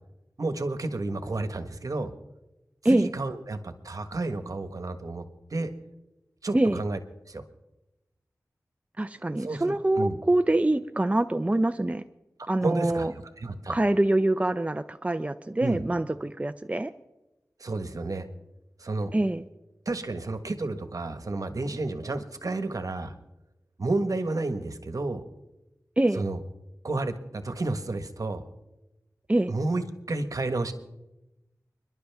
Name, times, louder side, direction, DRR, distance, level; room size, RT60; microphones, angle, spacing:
voice 1, 0.4-2.1 2.8-5.2 5.5-5.7 6.4-7.0 7.3-7.4 9.4-10.2 12.6-13.7 15.6-15.8 17.6-18.3 18.8-19.1 19.8-23.1 23.8-25.2 26.1-26.4 26.8-28.4 29.5-30.7, right 2 dB, 65° right, 9 dB, 1.4 m, -31 dB
voice 2, 9.0-12.0 12.5-13.1 13.7-16.9 19.1-19.4 26.0-26.2 29.3-29.5, right 1 dB, 20° right, 10 dB, 0.6 m, -25 dB
29.5 x 11.0 x 3.5 m, 0.97 s
wide cardioid pair, 50°, 6 cm